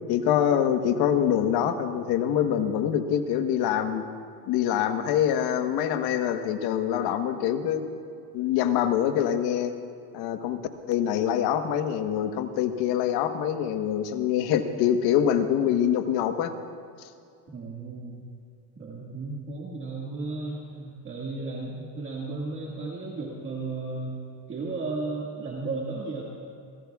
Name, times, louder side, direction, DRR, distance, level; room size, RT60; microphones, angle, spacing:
voice 1, 0.1-4.0 4.5-7.9 8.3-9.7 10.1-10.6 10.9-16.5, left 9 dB, 50° left, 8 dB, 1.2 m, -25 dB
voice 2, 17.5-18.2 18.8-24.2 24.5-26.2, right 3 dB, 25° right, -4 dB, 1.9 m, -34 dB
29.5 x 17.5 x 2.4 m, 2.3 s
supercardioid pair, 130°, 47 cm